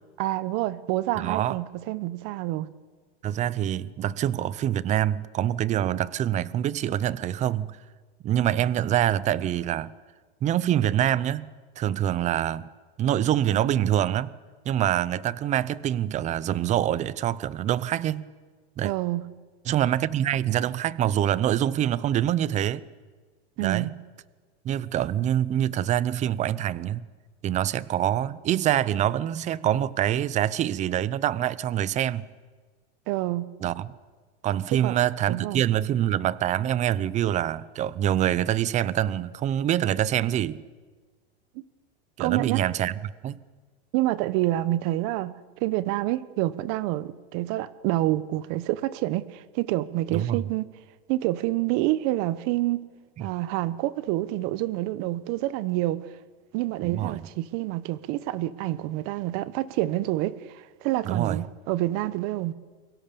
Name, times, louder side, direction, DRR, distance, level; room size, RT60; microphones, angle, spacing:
voice 1, 0.2-2.7 18.8-19.2 23.6-23.9 33.1-33.5 34.8-35.0 35.3-35.6 42.2-42.6 43.9-50.7 51.1-52.8 53.2-56.1 56.5-62.5, right 16 dB, 45° right, 1.2 m, -27 dB
voice 2, 1.2-1.6 3.2-7.8 8.2-9.9 10.4-11.5 11.8-12.7 13.0-14.3 14.7-18.3 18.8-18.9 19.7-22.8 23.6-23.9 24.6-27.1 27.4-32.3 33.6-33.9 34.4-40.6 42.2-43.4 50.1-50.4 56.8-57.2 61.0-61.4, right 11 dB, 20° right, 0.7 m, -25 dB
29.0 x 23.0 x 7.1 m
supercardioid pair, 145°, 32 cm